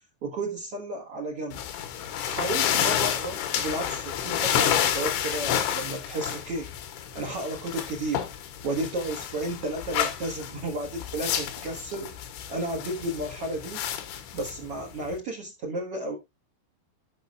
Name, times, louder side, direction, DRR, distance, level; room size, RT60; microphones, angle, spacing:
voice 1, 0.2-1.6 2.2-6.7 7.1-8.3 8.6-13.9 14.3-16.2, right 2 dB, 75° right, 1.3 m, -33 dB
sound 1, 1.5-15.2, left 9 dB, 80° left, 3.6 m, -30 dB
14.5 x 5.4 x 2.4 m
omnidirectional pair, 5.3 m